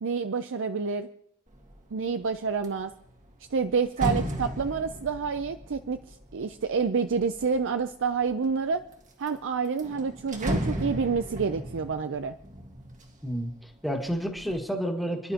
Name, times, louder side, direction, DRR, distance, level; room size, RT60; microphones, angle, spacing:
voice 1, 0.0-1.1 1.9-2.9 3.5-8.8 9.2-12.3, right 5 dB, 60° right, 9 dB, 0.5 m, -28 dB
sound 1, 1.5-1.9 2.3-7.6 8.2-8.9 9.3-9.4 9.6-13.6 14.0-14.6, equal, 35° right, 1.7 m, -35 dB
voice 2, 13.2-15.3, equal, ahead, 2 dB, 1.8 m, -30 dB
29.5 x 11.0 x 2.9 m, 0.75 s
head